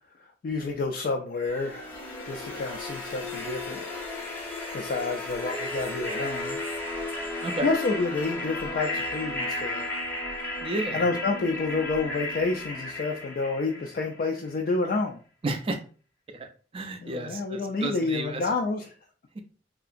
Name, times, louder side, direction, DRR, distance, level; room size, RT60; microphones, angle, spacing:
voice 1, 0.4-3.8 4.5-6.6 7.3-9.8 10.9-15.2 17.0-18.9, left 3 dB, 55° left, 2 dB, 0.3 m, -29 dB
sound 1, 1.4-14.4, left 2 dB, 10° left, 0.6 m, -34 dB
voice 2, 10.6-11.1 15.4-15.8 16.3-16.5 16.7-18.4 19.3-19.4, right 2 dB, 30° right, 7 dB, 0.4 m, -32 dB
2.8 x 2.5 x 2.4 m, 0.39 s
head